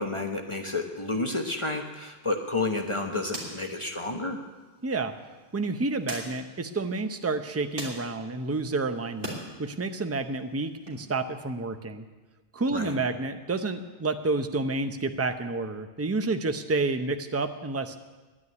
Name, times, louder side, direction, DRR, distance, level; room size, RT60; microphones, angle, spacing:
voice 1, 0.0-4.4 12.7-13.0, left 2 dB, 30° left, 3 dB, 1.0 m, -30 dB
sound 1, 2.2-9.4 9.8-10.9, right 1 dB, 50° right, 3.1 m, -44 dB
voice 2, 4.8-5.1 5.5-12.1 12.5-18.0, right 3 dB, 15° right, 8 dB, 0.6 m, -29 dB
11.0 x 9.7 x 9.6 m, 1.2 s
omnidirectional pair, 1.2 m